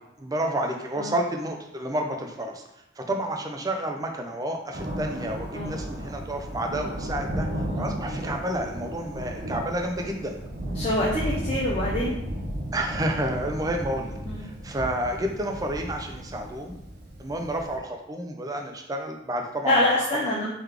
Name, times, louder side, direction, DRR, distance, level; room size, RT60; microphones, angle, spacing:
voice 1, 0.2-2.6 3.0-7.5 7.8-10.3 12.7-16.7 17.2-19.9, right 1 dB, 20° right, 2 dB, 0.4 m, -30 dB
Thunder, 4.7-17.8, right 1 dB, 55° right, 0.7 m, -34 dB
voice 2, 10.7-12.2 14.2-14.5 19.6-20.5, left 1 dB, 35° left, -5 dB, 0.6 m, -25 dB
3.8 x 3.0 x 3.3 m, 0.85 s
head